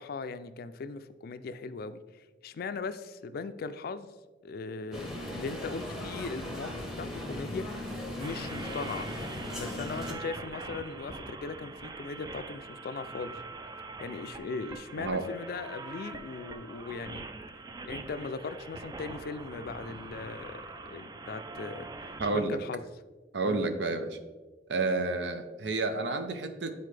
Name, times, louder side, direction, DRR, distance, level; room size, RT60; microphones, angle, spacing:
voice 1, 0.0-2.0 2.4-4.1 4.4-7.9 8.1-9.2 9.6-13.4 14.0-17.2 17.9-21.9 22.3-22.8 23.4-23.6, left 4 dB, 55° left, 12 dB, 0.4 m, -39 dB
sound 1, 4.9-10.1, left 1 dB, ahead, 1.0 m, -38 dB
sound 2, 8.2-22.5, right 3 dB, 20° right, 0.4 m, -43 dB
voice 2, 22.2-22.6 23.3-24.2 24.7-26.7, right 3 dB, 80° right, 8 dB, 0.6 m, -30 dB
9.3 x 4.1 x 3.3 m, 1.3 s
head